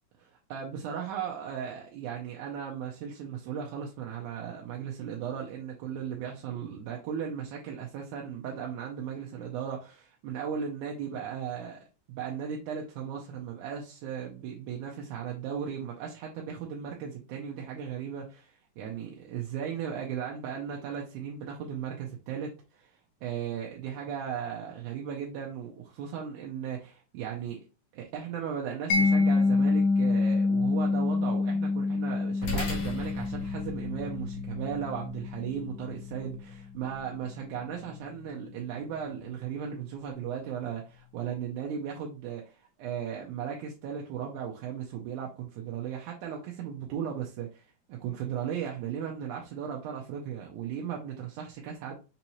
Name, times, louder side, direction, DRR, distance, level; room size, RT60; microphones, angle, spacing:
voice 1, 0.5-11.8 12.1-27.6 27.9-51.9, right 8 dB, 80° right, 2.1 m, -36 dB
Mallet percussion, 28.9-35.7, left 3 dB, 85° left, 2.1 m, -27 dB
sound 1, 32.4-41.1, left 5 dB, 60° left, 1.8 m, -41 dB
5.5 x 2.7 x 2.9 m
omnidirectional pair, 3.5 m